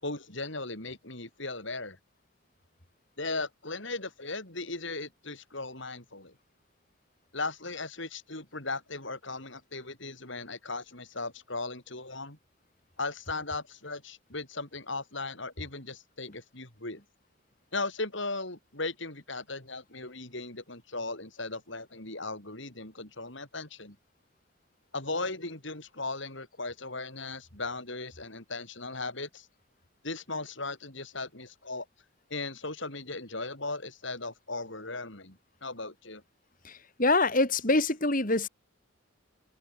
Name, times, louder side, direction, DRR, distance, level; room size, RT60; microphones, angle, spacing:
voice 1, 0.0-2.0 3.2-6.4 7.3-12.4 13.0-17.0 17.7-24.0 24.9-29.5 30.0-31.9 32.3-36.2, left 3 dB, 60° left, 5.3 m, -37 dB
voice 2, 36.6-38.5, left 2 dB, 40° left, 3.4 m, -25 dB
head